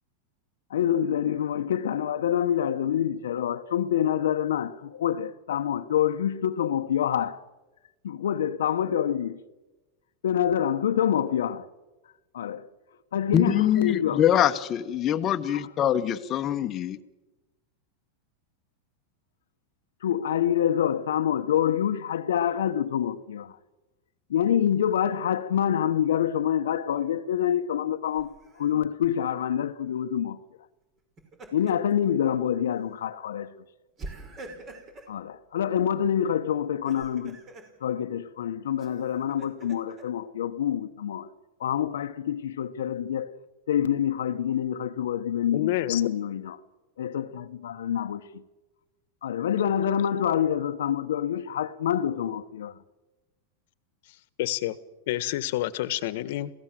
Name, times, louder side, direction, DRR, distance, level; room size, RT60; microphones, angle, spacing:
voice 1, 0.7-7.4 8.0-9.4 10.2-11.7 12.3-12.7 13.1-14.2 15.5-15.7 20.0-23.6 24.3-30.4 31.5-33.5 35.1-37.4 37.8-41.3 41.6-43.4 43.7-46.6 47.0-48.4 49.2-52.8, left 9 dB, 85° left, 1.0 m, -26 dB
voice 2, 13.3-17.0, left 10 dB, 35° left, 1.2 m, -24 dB
Laughter, 28.1-28.7 31.0-31.9 32.3-32.5 34.0-35.1 36.7-37.7 38.8-40.0, right 2 dB, 30° right, 5.4 m, -44 dB
voice 3, 45.5-46.0 54.4-54.8 55.1-56.5, left 15 dB, 65° left, 1.4 m, -28 dB
27.5 x 17.0 x 7.7 m
hypercardioid pair, 120°, 0 cm